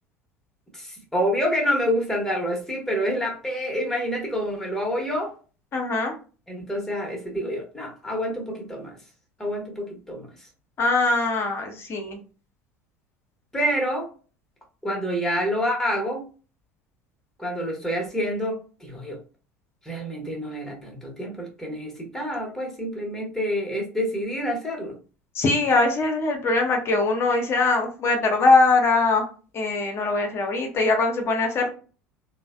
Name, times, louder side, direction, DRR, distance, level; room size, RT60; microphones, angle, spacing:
voice 1, 0.7-5.3 6.5-9.0 9.4-10.3 13.5-14.1 14.8-16.2 17.4-19.2 19.8-25.0, equal, 5° left, 0 dB, 0.9 m, -27 dB
voice 2, 5.7-6.2 10.8-12.2 25.3-29.3 29.5-31.7, left 3 dB, 35° left, 4 dB, 0.7 m, -22 dB
3.1 x 2.1 x 2.3 m, 0.37 s
figure-of-eight pair, 70°, 7 cm